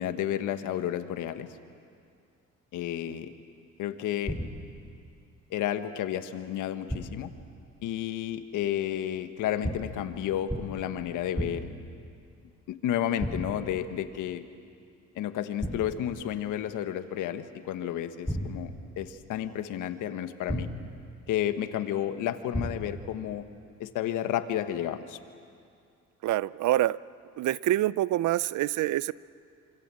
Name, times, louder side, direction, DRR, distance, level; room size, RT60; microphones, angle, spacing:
voice 1, 0.0-1.5 2.7-3.3 3.8-4.3 5.5-7.3 7.8-11.6 12.7-14.4 15.1-20.7 21.3-23.4 23.8-25.2, left 11 dB, 90° left, 9 dB, 1.4 m, -31 dB
sound 1, 4.3-4.8 6.9-7.4 9.6-10.1 10.5-10.9 11.4-11.9 13.2-13.8 15.6-16.1 18.3-18.9 20.5-21.0 22.5-23.1, equal, 5° left, 4.9 m, -34 dB
voice 2, 26.2-27.0 27.4-29.1, right 14 dB, 75° right, 19 dB, 0.6 m, -26 dB
27.0 x 26.5 x 7.6 m, 2.4 s
cardioid pair, 90°, 30 cm